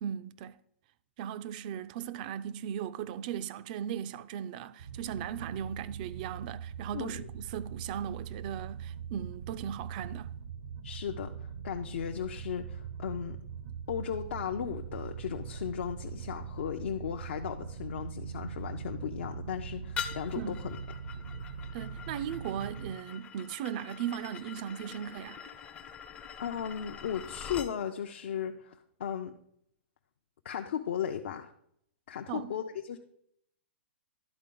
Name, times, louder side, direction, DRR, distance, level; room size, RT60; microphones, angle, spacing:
voice 1, 0.0-0.6 1.2-10.3 20.3-20.6 21.7-25.4 32.3-32.5, right 9 dB, 45° right, 0.4 m, -37 dB
sound 1, 4.8-22.9, right 7 dB, 70° right, 0.7 m, -42 dB
voice 2, 6.9-7.3 10.8-11.3 11.6-13.4 13.9-20.8 26.4-29.4 30.4-31.5 32.1-33.0, left 8 dB, 70° left, 0.5 m, -36 dB
sound 2, 20.0-27.7, left 7 dB, 20° left, 0.4 m, -44 dB
11.5 x 4.2 x 3.8 m
hypercardioid pair, 135°, 6 cm